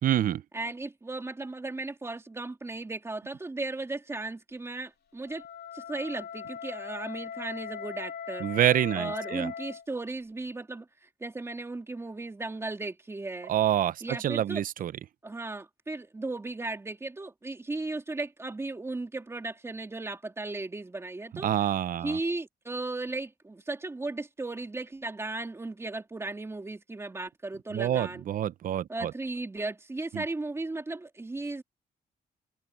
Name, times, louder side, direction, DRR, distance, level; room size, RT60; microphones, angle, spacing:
voice 1, 0.0-0.4 8.4-9.5 13.5-14.9 21.4-22.2 27.7-29.1 30.1-30.2, right 11 dB, 60° right, 0.6 m, -27 dB
voice 2, 0.5-5.4 5.7-8.5 8.9-13.5 14.0-14.6 15.2-21.5 22.0-28.2 28.9-31.6, right 2 dB, 15° right, 3.1 m, -36 dB
Wind instrument woodwind instrument, 5.2-9.9, left 7 dB, 85° left, 3.1 m, -40 dB
open air
wide cardioid pair, 165°, 16 cm